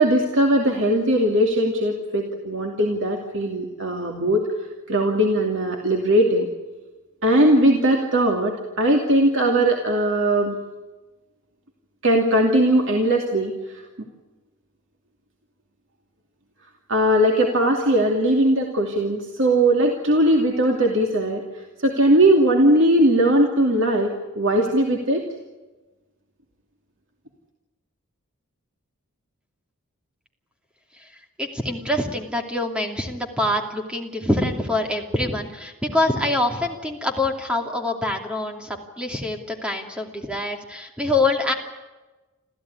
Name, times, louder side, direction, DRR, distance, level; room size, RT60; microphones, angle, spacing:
voice 1, 0.0-4.5 4.9-6.5 7.2-10.6 12.0-13.8 16.9-21.4 21.8-25.2, right 1 dB, 60° right, 1 dB, 2.7 m, -19 dB
voice 2, 31.4-41.5, left 2 dB, 5° right, 3 dB, 2.7 m, -25 dB
27.5 x 15.0 x 9.7 m, 1.2 s
head